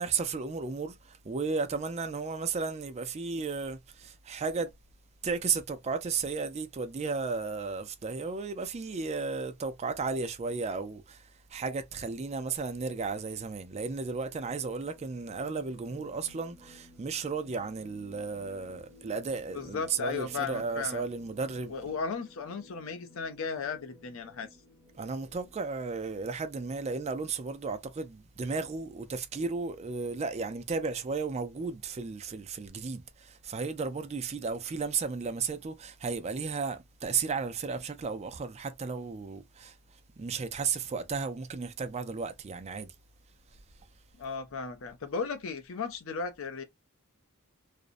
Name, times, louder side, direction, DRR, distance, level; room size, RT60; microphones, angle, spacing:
voice 1, 0.0-4.7 5.2-21.9 24.9-39.8 40.2-42.9, right 4 dB, 30° right, 0.3 m, -34 dB
sound 1, 13.9-25.6, left 2 dB, 10° right, 1.2 m, -56 dB
voice 2, 19.5-21.0 21.7-24.5 44.2-46.6, left 5 dB, 65° left, 0.5 m, -35 dB
2.5 x 2.0 x 2.5 m
head